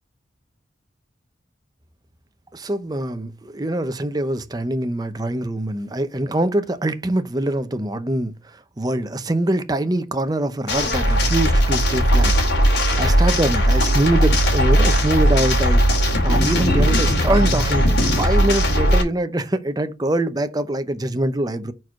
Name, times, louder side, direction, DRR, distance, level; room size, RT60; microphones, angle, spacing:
voice 1, 2.5-12.3 12.6-15.8 16.2-21.7, right 1 dB, 20° right, 0.7 m, -24 dB
sound 1, 10.7-19.0, equal, 70° left, 2.8 m, -18 dB
4.6 x 4.6 x 5.7 m
head